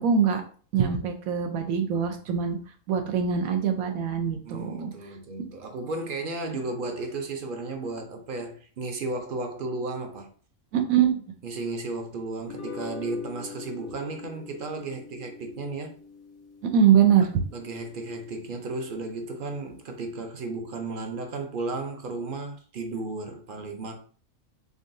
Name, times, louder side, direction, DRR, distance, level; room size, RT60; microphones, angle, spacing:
voice 1, 0.0-0.4 0.7-2.6 2.9-4.9 10.7-11.2 16.6-17.3, right 8 dB, 85° right, 1.1 m, -23 dB
voice 2, 4.5-10.3 11.4-16.0 17.5-24.0, right 2 dB, 50° right, 0.7 m, -34 dB
sound 1, 12.4-18.9, left 5 dB, 85° left, 1.1 m, -44 dB
3.8 x 3.6 x 2.6 m
omnidirectional pair, 1.4 m